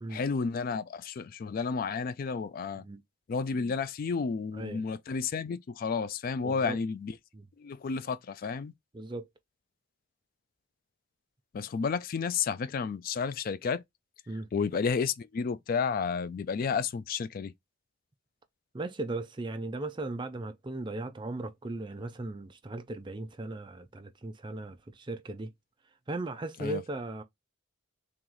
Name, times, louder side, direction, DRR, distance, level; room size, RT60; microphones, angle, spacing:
voice 1, 0.1-2.9 3.3-7.2 7.6-8.7 11.5-13.8 14.5-17.5 26.6-26.8, left 5 dB, 45° left, 0.3 m, -31 dB
voice 2, 6.4-6.8 7.3-7.4 8.9-9.2 14.3-14.5 18.7-25.5 26.1-27.2, right 2 dB, 25° right, 0.5 m, -37 dB
3.0 x 3.0 x 3.8 m
head